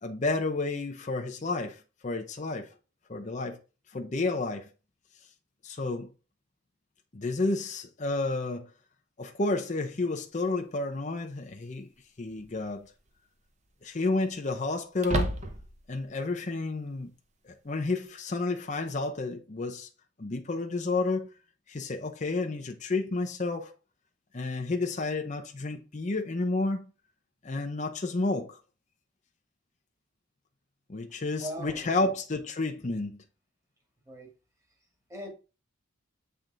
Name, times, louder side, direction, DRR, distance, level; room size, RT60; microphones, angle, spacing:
voice 1, 0.0-2.7 3.1-3.6 3.9-4.7 5.6-6.1 7.1-8.7 9.2-11.9 12.2-12.9 13.8-15.4 15.9-17.1 17.4-19.9 20.2-21.3 21.7-23.7 24.3-26.9 27.4-28.6 30.9-33.2, left 3 dB, 35° left, 0.6 m, -31 dB
sound 1, 10.4-10.5 12.3-12.7 13.1-13.2 15.0-15.9, right 1 dB, 35° right, 0.8 m, -31 dB
voice 2, 31.4-32.1 34.1-34.3 35.1-35.3, right 1 dB, 15° right, 1.8 m, -40 dB
7.5 x 3.4 x 3.8 m
head